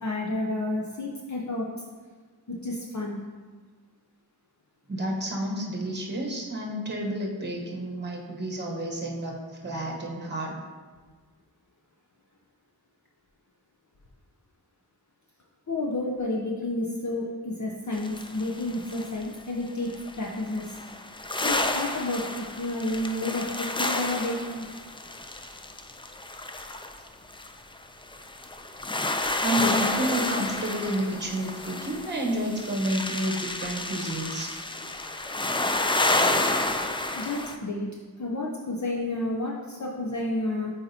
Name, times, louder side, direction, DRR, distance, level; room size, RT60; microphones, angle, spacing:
voice 1, 0.0-1.7 2.5-3.2 15.7-20.7 21.4-24.7 37.2-37.9 38.2-40.7, left 2 dB, 45° left, -2 dB, 0.6 m, -30 dB
voice 2, 4.9-9.4 9.6-10.6 29.4-34.5, right 1 dB, 25° right, -1 dB, 1.0 m, -30 dB
sound 1, 17.9-19.2 19.9-37.6, left 2 dB, 15° left, 0.3 m, -30 dB
8.4 x 4.1 x 2.7 m, 1.5 s
wide cardioid pair, 65°, 40 cm